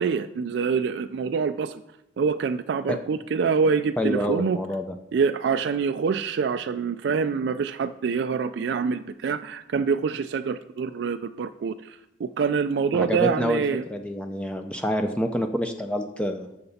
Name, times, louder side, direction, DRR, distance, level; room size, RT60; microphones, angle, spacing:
voice 1, 0.0-1.8 2.2-4.6 5.1-13.8, right 5 dB, 70° right, 10 dB, 0.3 m, -25 dB
voice 2, 4.0-4.9 12.9-13.6 13.9-16.6, equal, 5° left, 5 dB, 0.4 m, -27 dB
12.0 x 6.7 x 4.2 m, 0.93 s
head